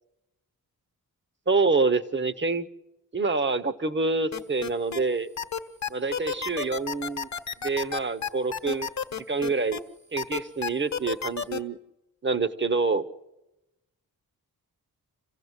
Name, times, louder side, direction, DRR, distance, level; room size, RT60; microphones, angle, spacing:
voice 1, 1.5-2.7 3.1-5.3 5.9-7.3 7.6-8.9 9.3-9.8 10.1-11.8 12.2-13.0, right 4 dB, 30° right, 11 dB, 0.9 m, -26 dB
sound 1, 4.3-5.0 5.4-9.8 10.2-11.6, left 7 dB, 50° left, 1.1 m, -31 dB
27.0 x 15.5 x 8.1 m, 0.94 s
wide cardioid pair, 130°, 37 cm